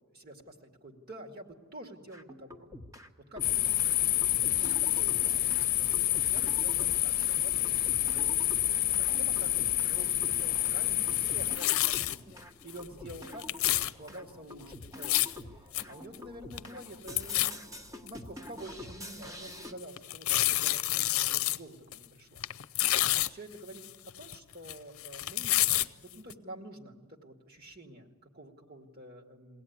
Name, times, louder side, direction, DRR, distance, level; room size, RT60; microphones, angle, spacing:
voice 1, 0.1-2.7 3.3-4.0 4.5-7.8 8.1-8.7 9.2-12.3 12.6-15.2 15.9-17.7 18.0-22.4 23.3-23.8 24.2-29.6, right 1 dB, 45° right, 2 dB, 2.3 m, -48 dB
sound 1, 2.1-3.1 3.4-19.7, left 1 dB, 15° right, 1.2 m, -47 dB
sound 2, 3.4-11.6, left 13 dB, 40° left, 1.0 m, -28 dB
sound 3, 11.2-12.2 12.7-12.8 13.1-13.9 14.8-15.4 15.7-15.8 16.1-16.2 16.5-16.9 17.2-17.5 18.1-18.2 18.7-18.8 20.0-21.6 21.9-22.0 22.4-23.3 23.8-24.7 25.0-25.9 26.3-26.4, left 15 dB, 80° left, 0.6 m, -28 dB
22.5 x 17.0 x 9.5 m, 1.5 s
head